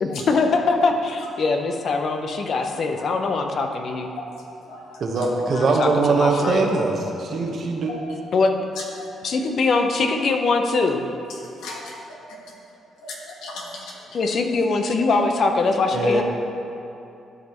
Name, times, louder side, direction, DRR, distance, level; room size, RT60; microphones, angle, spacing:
voice 1, 0.0-4.1 5.6-6.7 8.3-8.5 9.2-11.1 14.1-16.2, left 3 dB, 55° left, 4 dB, 0.7 m, -22 dB
voice 2, 4.3-5.7 7.9-8.2 8.8-9.1 11.6-12.4 13.0-14.2, left 2 dB, 85° left, -2 dB, 1.4 m, -37 dB
voice 3, 5.0-7.9 15.9-16.2, right 3 dB, 55° right, 1 dB, 1.1 m, -21 dB
12.5 x 5.3 x 3.0 m, 2.8 s
cardioid pair, 90°, 0 cm